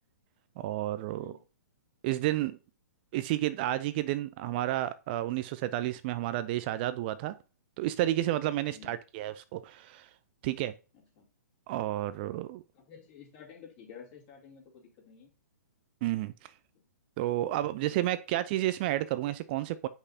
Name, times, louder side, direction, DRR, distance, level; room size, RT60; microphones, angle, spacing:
voice 1, 0.6-1.3 2.0-2.6 3.1-7.3 7.8-10.1 10.4-10.7 11.7-12.6 16.0-16.5 17.2-19.9, right 14 dB, 35° right, 0.4 m, -31 dB
voice 2, 1.1-1.4 8.7-9.0 11.2-11.3 12.7-15.3 16.7-16.8, left 7 dB, 35° left, 2.8 m, -51 dB
8.0 x 5.4 x 2.7 m
figure-of-eight pair, 120°, 9 cm